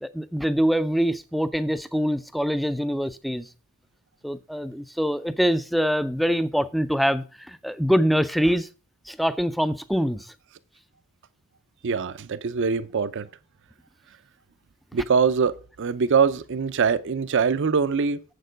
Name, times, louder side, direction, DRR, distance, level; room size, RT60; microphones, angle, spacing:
voice 1, 0.0-3.5 4.2-8.7 9.1-10.3, equal, ahead, 0.4 m, -24 dB
voice 2, 11.8-13.3 14.9-18.2, right 5 dB, 55° right, 0.5 m, -23 dB
7.4 x 6.6 x 5.1 m
head